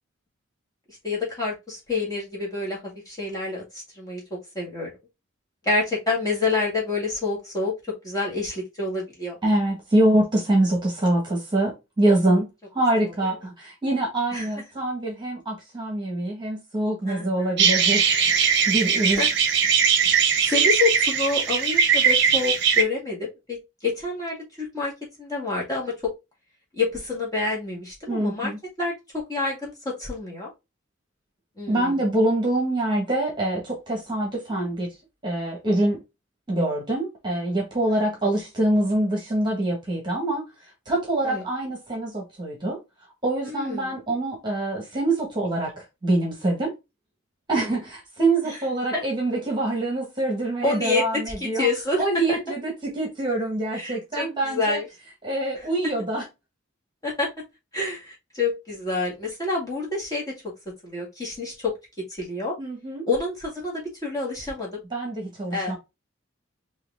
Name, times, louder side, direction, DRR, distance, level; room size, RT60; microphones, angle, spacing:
voice 1, 1.0-2.8 3.1-4.2 4.5-4.9 5.6-7.7 8.0-9.4 12.0-12.1 13.0-13.3 14.3-14.5 17.1-17.5 19.1-19.3 20.1-24.9 25.2-26.1 26.7-28.5 28.8-30.5 31.6-32.0 37.9-38.0 41.2-41.4 43.4-44.0 47.6-47.8 48.4-48.6 48.9-49.0 50.6-51.0 51.4-52.4 53.7-54.9 55.6-55.7 57.0-57.3 57.7-60.3 60.8-61.7 62.1-62.5 63.1-64.7 65.5-65.8, left 3 dB, 15° left, 2.1 m, -28 dB
voice 2, 9.4-18.3 18.7-19.2 28.1-28.6 31.7-34.9 35.2-36.0 36.5-40.4 40.9-42.8 43.2-46.7 47.5-51.7 52.0-54.8 55.2-56.2 62.6-63.1 64.9-65.8, right 1 dB, 20° right, 1.4 m, -25 dB
sound 1, 17.6-22.8, right 7 dB, 55° right, 0.8 m, -20 dB
4.6 x 2.9 x 3.5 m
head